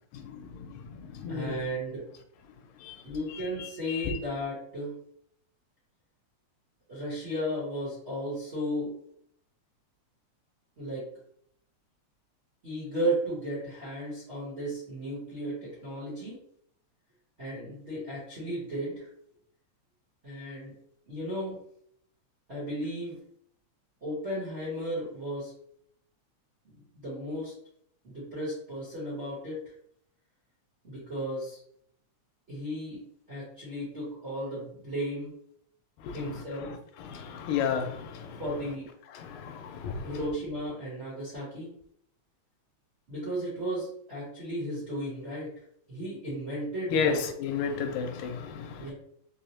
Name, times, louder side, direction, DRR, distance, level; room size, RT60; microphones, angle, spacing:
voice 1, 0.1-1.6 2.7-4.2 36.0-38.8 39.1-40.3 46.9-48.9, left 6 dB, 85° left, 6 dB, 1.9 m, -34 dB
voice 2, 1.3-2.0 3.0-4.9 6.9-8.9 10.8-11.0 12.6-16.4 17.4-19.1 20.2-20.7 21.1-21.6 22.5-23.2 24.0-25.5 26.9-27.5 28.0-29.6 30.8-31.6 32.5-33.0 33.3-35.3 36.1-36.7 38.3-38.9 40.0-41.7 43.1-45.5 45.9-47.2 48.8-48.9, equal, 90° right, -8 dB, 0.5 m, -34 dB
4.7 x 2.0 x 2.8 m, 0.68 s
omnidirectional pair, 3.3 m